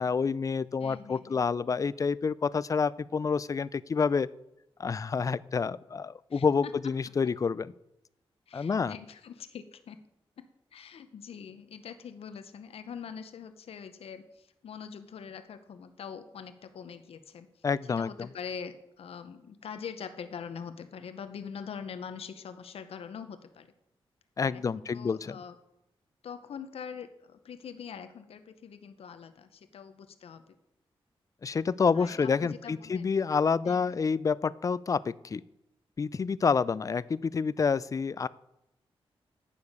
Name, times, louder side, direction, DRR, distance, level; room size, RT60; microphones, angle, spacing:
voice 1, 0.0-4.3 4.8-7.7 8.5-9.0 17.6-18.3 24.4-25.4 31.4-35.4 36.0-38.3, left 5 dB, 35° left, 20 dB, 0.3 m, -28 dB
voice 2, 0.8-1.4 6.3-6.9 8.5-10.0 10.4-17.5 18.0-23.7 24.4-25.5 26.2-30.5 31.9-33.1 33.6-34.0, left 7 dB, 75° left, 10 dB, 0.7 m, -43 dB
9.7 x 7.0 x 5.4 m, 0.84 s
wide cardioid pair, 95°, 10 cm